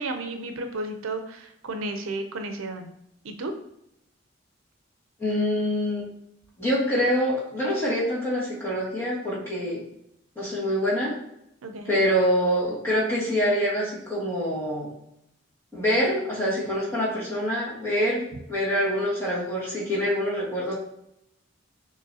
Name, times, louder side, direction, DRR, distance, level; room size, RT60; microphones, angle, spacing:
voice 1, 0.0-2.9 3.2-3.5 11.6-11.9, right 2 dB, 85° right, 6 dB, 0.5 m, -33 dB
voice 2, 5.2-6.1 6.6-9.8 10.4-11.1 11.9-14.9 15.7-20.8, equal, 10° left, -9 dB, 1.7 m, -25 dB
6.4 x 3.0 x 2.7 m, 0.79 s
head